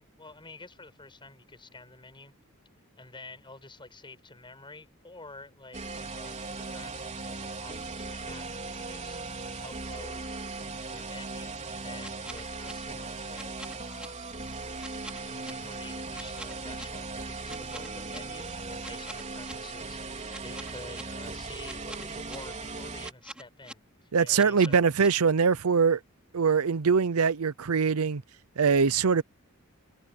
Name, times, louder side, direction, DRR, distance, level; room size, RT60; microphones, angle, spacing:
voice 1, 0.0-2.3 3.0-9.2 9.6-10.3 10.9-14.2 15.2-24.8, left 3 dB, 20° left, 5.8 m, -49 dB
sound 1, 5.7-23.1, right 3 dB, 35° right, 4.1 m, -38 dB
sound 2, 12.0-12.7 13.3-14.1 14.8-15.5 16.1-16.9 17.5-18.2 18.8-19.5 20.3-21.0 21.6-22.4 23.0-23.7 24.3-25.1, right 1 dB, 5° right, 4.2 m, -44 dB
voice 2, 24.1-26.0 26.3-28.2 28.6-29.2, right 5 dB, 80° right, 0.6 m, -23 dB
head